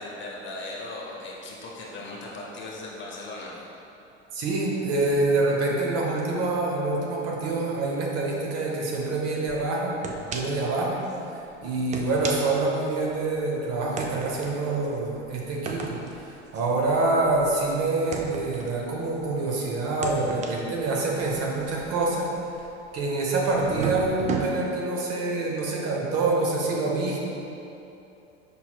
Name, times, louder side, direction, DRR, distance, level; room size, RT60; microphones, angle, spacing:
voice 1, 0.0-3.5, left 2 dB, 35° left, -3 dB, 0.8 m, -38 dB
voice 2, 4.3-10.0 10.3-22.3 22.9-27.2, right 2 dB, 45° right, -2 dB, 0.9 m, -26 dB
sound 1, 10.0-10.7 11.0-11.2 11.8-13.3 14.0-19.4 19.9-23.0 23.5-24.5, right 4 dB, 20° right, 0.4 m, -35 dB
5.4 x 4.2 x 2.3 m, 2.9 s
hypercardioid pair, 90°, 35 cm